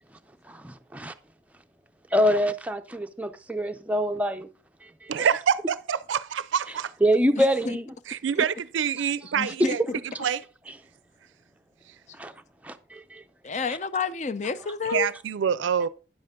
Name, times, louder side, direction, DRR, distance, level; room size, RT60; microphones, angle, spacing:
voice 1, 0.5-1.1 2.1-4.5 5.0-5.3 7.0-7.9 9.6-9.7 12.2-12.3 12.6-13.2 13.7-13.8, equal, 10° right, 0.5 m, -25 dB
voice 2, 5.1-6.9 8.1-9.8 10.2-10.4 14.9-15.9, right 7 dB, 90° right, 0.4 m, -26 dB
voice 3, 9.4-10.0 13.4-15.1, left 5 dB, 40° left, 0.5 m, -29 dB
9.9 x 7.7 x 3.7 m
head